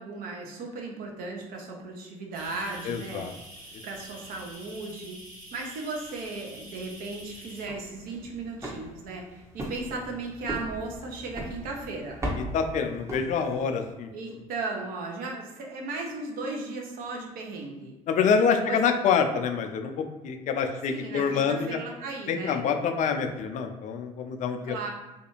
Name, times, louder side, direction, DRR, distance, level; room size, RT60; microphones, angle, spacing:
voice 1, 0.0-3.3 3.8-5.2 5.5-12.2 14.1-18.0 18.5-18.8 20.9-22.6 24.6-24.9, right 3 dB, 55° right, 1 dB, 0.7 m, -36 dB
sound 1, 2.3-7.6, right 1 dB, 75° right, 1.4 m, -46 dB
voice 2, 2.9-3.3 12.4-14.1 18.1-21.8 22.3-24.9, left 6 dB, 45° left, 5 dB, 0.4 m, -26 dB
sound 2, 7.5-13.8, right 1 dB, 15° right, 0.8 m, -38 dB
2.5 x 2.3 x 2.9 m, 1.1 s
figure-of-eight pair, 55°, 18 cm